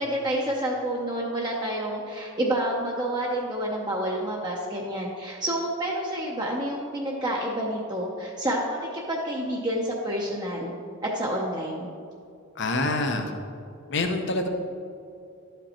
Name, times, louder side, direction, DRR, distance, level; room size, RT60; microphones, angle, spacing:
voice 1, 0.0-10.7 11.0-11.9, right 1 dB, 20° right, -3 dB, 0.7 m, -29 dB
voice 2, 12.6-13.3 13.9-14.5, left 2 dB, 55° left, 5 dB, 0.8 m, -26 dB
12.0 x 5.2 x 4.3 m, 2.5 s
head